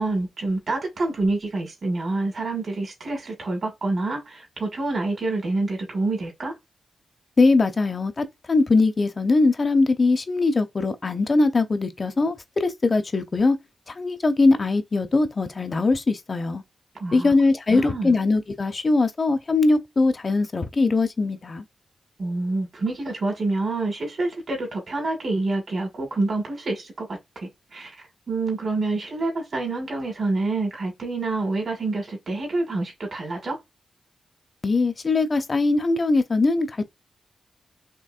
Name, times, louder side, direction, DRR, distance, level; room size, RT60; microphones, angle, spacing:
voice 1, 0.0-6.5 17.0-17.3 17.7-18.2 22.2-33.6, right 2 dB, 60° right, 1.9 m, -27 dB
voice 2, 7.4-13.6 14.0-16.6 17.1-21.6 34.6-36.7, left 3 dB, 45° left, 0.7 m, -21 dB
4.5 x 3.0 x 2.4 m
cardioid pair, 55°, 0 cm